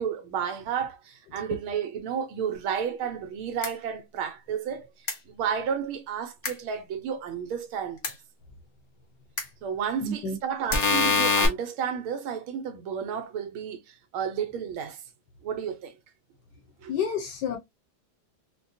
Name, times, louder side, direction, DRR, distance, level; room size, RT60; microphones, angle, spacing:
voice 1, 0.0-4.9 5.3-8.0 9.6-15.0 15.4-15.9 16.8-16.9, right 7 dB, 80° right, 1.6 m, -32 dB
sound 1, 3.6-3.7 5.1-5.2 6.4-6.5 8.0-8.1 9.4-9.5 10.7-11.5, left 4 dB, 80° left, 0.4 m, -23 dB
voice 2, 10.0-10.4 16.9-17.6, left 5 dB, 65° left, 1.2 m, -29 dB
4.5 x 2.2 x 2.6 m
omnidirectional pair, 2.3 m